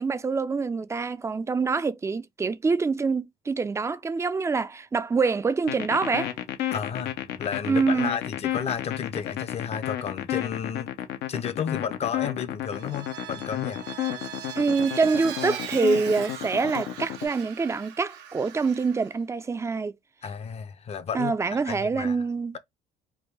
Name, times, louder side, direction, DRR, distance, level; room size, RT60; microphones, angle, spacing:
voice 1, 0.0-6.3 7.7-8.1 14.6-19.9 21.1-22.6, right 4 dB, 15° right, 0.4 m, -25 dB
sound 1, 5.7-17.3, left 12 dB, 80° left, 0.6 m, -32 dB
voice 2, 6.7-10.9 11.3-13.8 20.2-22.2, left 7 dB, 40° left, 0.5 m, -32 dB
Vehicle, 12.7-19.1, right 9 dB, 90° right, 0.7 m, -40 dB
3.4 x 2.2 x 3.2 m
cardioid pair, 110°, 17 cm